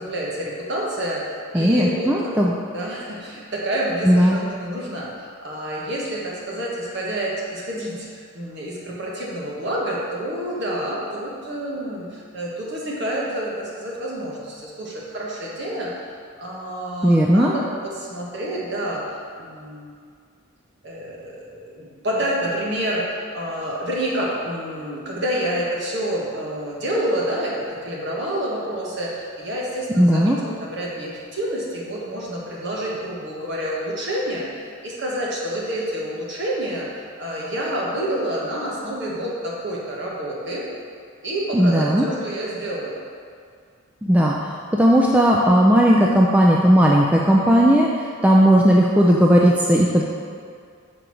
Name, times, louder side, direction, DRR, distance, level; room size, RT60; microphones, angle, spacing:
voice 1, 0.0-2.4 2.7-15.9 16.4-19.9 20.8-36.9 37.2-40.7 41.2-43.0, right 1 dB, 55° right, -4 dB, 1.4 m, -28 dB
voice 2, 1.5-2.5 4.1-4.4 17.0-17.5 30.0-30.4 41.5-42.1 44.0-44.4 44.7-47.9 48.2-50.0, equal, 5° right, -3 dB, 0.3 m, -16 dB
5.2 x 4.5 x 6.2 m, 2.2 s
head